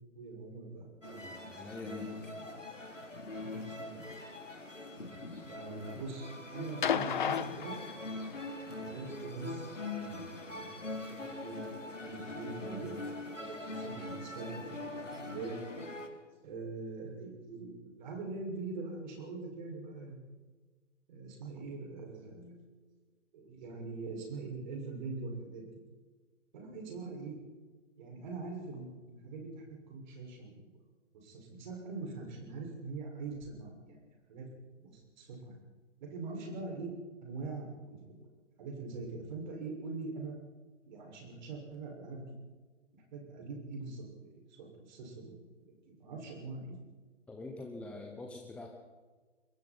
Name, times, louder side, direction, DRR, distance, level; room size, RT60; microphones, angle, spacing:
voice 1, 0.1-1.7 2.0-2.7 3.3-4.1 5.5-7.7 8.7-15.5 16.4-20.2 21.1-22.6 23.3-25.6 26.5-27.4 28.0-30.7 31.1-34.0 34.3-34.5 34.8-35.6 36.0-36.9 37.2-38.3 38.6-40.4 40.8-42.3 43.1-46.8, right 3 dB, 40° right, 0 dB, 6.6 m, -43 dB
sound 1, 1.0-16.1, left 2 dB, 80° left, 4.0 m, -43 dB
voice 2, 1.1-2.1 47.3-48.7, left 2 dB, 5° left, 1 dB, 1.0 m, -45 dB
sound 2, 6.8-8.5 9.8-9.9, left 8 dB, 40° left, 1.0 m, -33 dB
26.0 x 22.5 x 4.6 m, 1.4 s
figure-of-eight pair, 130°, 37 cm